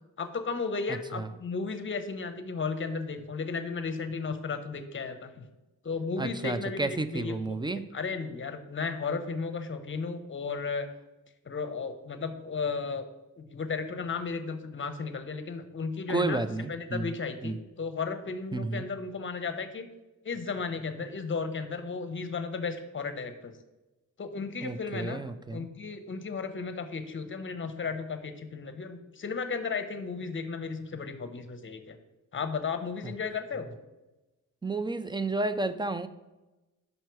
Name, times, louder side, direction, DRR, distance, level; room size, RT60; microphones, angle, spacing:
voice 1, 0.2-5.5 5.8-7.6 7.9-10.9 11.5-13.1 13.4-19.9 20.2-23.6 24.2-25.2 25.5-32.0 32.3-33.7, left 4 dB, 35° left, 9 dB, 0.8 m, -34 dB
voice 2, 0.9-1.3 6.2-7.8 16.1-17.1 17.4-17.6 18.5-18.8 24.6-25.7 33.0-33.1 34.6-36.1, right 2 dB, 15° right, 12 dB, 0.3 m, -31 dB
5.7 x 5.4 x 4.6 m, 1.1 s
cardioid pair, 95°, 33 cm